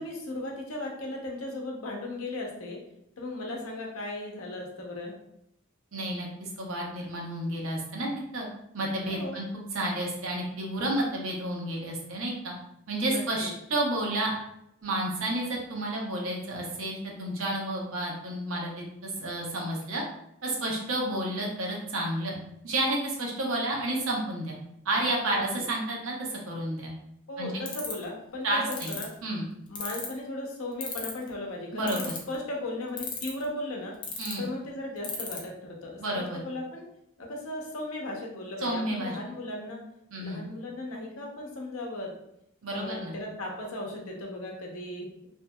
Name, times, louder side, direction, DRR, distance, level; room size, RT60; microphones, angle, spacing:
voice 1, 0.0-2.8 3.2-5.2 9.1-9.4 13.0-13.5 25.3-25.6 27.3-29.1 29.7-33.9 34.4-36.8 37.2-39.8 40.2-42.1 42.7-45.3, left 1 dB, 90° left, -1 dB, 0.7 m, -37 dB
voice 2, 5.9-8.5 8.7-12.5 12.9-14.3 14.8-20.0 20.4-22.4 22.6-24.5 24.8-26.9 27.4-27.5 28.4-29.0 29.2-29.5 31.7-32.1 34.2-34.5 36.0-36.4 38.6-39.2 40.1-40.4 42.6-43.1, right 1 dB, 80° right, -1 dB, 0.7 m, -31 dB
sound 1, 27.7-28.0 28.7-29.0 29.7-30.2 30.8-31.3 31.9-32.3 33.0-33.4 34.0-34.3 35.0-35.4, left 7 dB, 20° left, 0.3 m, -34 dB
2.7 x 2.7 x 2.2 m, 0.79 s
head